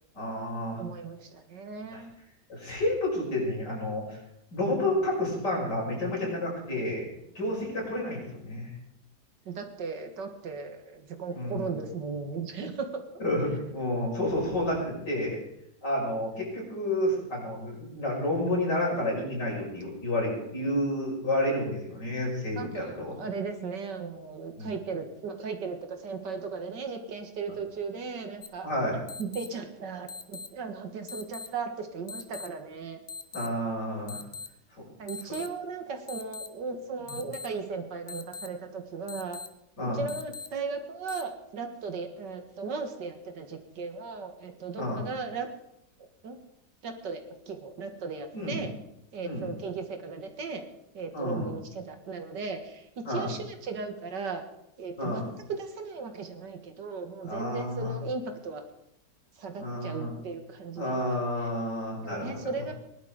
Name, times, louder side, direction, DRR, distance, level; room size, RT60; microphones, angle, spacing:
voice 1, 0.1-0.8 1.9-2.0 2.5-4.2 4.5-7.1 7.3-8.7 11.3-11.7 13.2-15.4 15.8-23.1 24.6-24.7 28.6-29.0 33.3-34.2 34.8-34.9 37.0-37.2 39.8-40.1 44.8-45.0 48.3-48.6 49.2-49.5 51.1-51.5 53.0-53.3 55.0-55.3 57.2-58.0 59.6-60.1 60.8-62.5, left 1 dB, 75° left, -3 dB, 6.6 m, -30 dB
voice 2, 0.8-2.1 9.5-12.9 22.6-33.0 35.0-39.4 39.8-45.5 46.2-46.4 46.8-48.7 49.1-50.6 50.9-54.4 54.8-58.6 59.4-61.0 62.0-62.7, right 4 dB, 85° right, 6 dB, 2.3 m, -37 dB
sound 1, 28.4-28.5 29.1-29.5 30.1-30.5 31.1-31.5 32.1-32.5 33.1-33.5 34.1-34.5 35.1-35.5 36.1-36.5 37.1-37.5 38.1-38.5 39.1-39.5 40.1-40.5 41.1-41.2, left 5 dB, 35° left, 0.8 m, -40 dB
19.5 x 11.5 x 5.1 m, 0.83 s
omnidirectional pair, 1.8 m